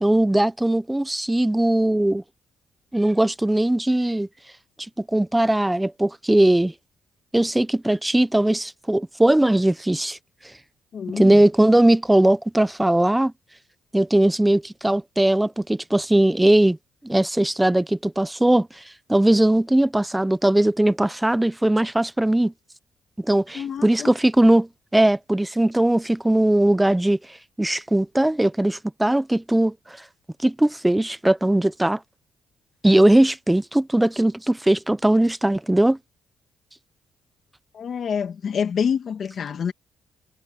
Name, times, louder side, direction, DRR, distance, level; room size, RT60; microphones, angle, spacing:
voice 1, 0.0-2.2 2.9-4.3 5.0-6.7 7.3-10.2 11.1-13.3 13.9-16.8 17.0-18.7 19.1-22.5 23.2-27.2 27.6-29.7 30.4-32.0 32.8-36.0, right 1 dB, 10° right, 0.9 m, -19 dB
voice 2, 10.9-11.4 23.5-24.1 37.7-39.7, left 7 dB, 55° left, 2.0 m, -27 dB
cardioid pair, 90°, 0 cm